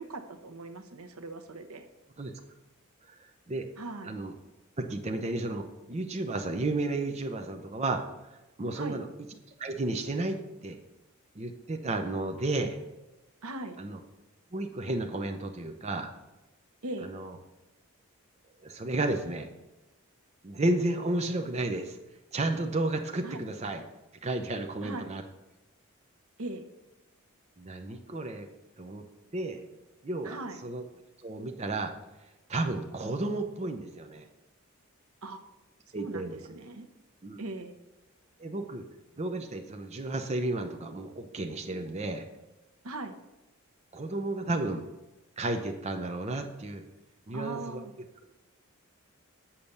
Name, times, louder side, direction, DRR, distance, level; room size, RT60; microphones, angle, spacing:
voice 1, 0.0-1.9 3.8-4.1 8.8-9.0 13.4-13.8 16.8-17.1 23.2-23.4 24.8-25.1 26.4-26.7 30.2-30.6 35.2-35.4 36.0-36.9 37.4-37.7 42.8-43.2 47.3-47.9, right 2 dB, 80° right, 8 dB, 0.9 m, -39 dB
voice 2, 3.2-3.7 4.0-4.3 4.8-9.1 9.6-10.8 11.4-12.8 13.8-14.0 14.5-16.1 17.0-17.3 18.6-19.5 20.4-22.0 22.3-23.8 24.2-25.2 27.6-28.5 28.8-29.0 29.3-29.6 30.0-30.4 30.6-30.8 31.2-31.9 32.5-34.3 35.9-36.4 37.2-37.4 38.4-38.8 39.2-42.2 43.9-44.8 45.4-46.8 47.3-47.9, right 2 dB, 30° right, 5 dB, 0.6 m, -32 dB
7.1 x 5.8 x 6.6 m, 1.0 s
head